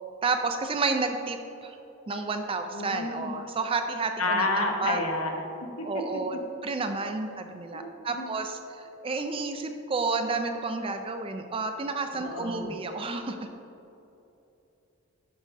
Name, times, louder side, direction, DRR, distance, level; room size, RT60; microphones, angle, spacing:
voice 1, 0.2-1.8 2.1-5.0 5.8-13.4, right 3 dB, 25° right, 6 dB, 0.3 m, -31 dB
voice 2, 2.7-3.3 4.2-5.4 5.8-5.9 7.7-7.9 8.1-8.3 12.2-12.7, left 2 dB, 75° left, 2 dB, 0.9 m, -29 dB
11.5 x 5.0 x 2.6 m, 2.9 s
head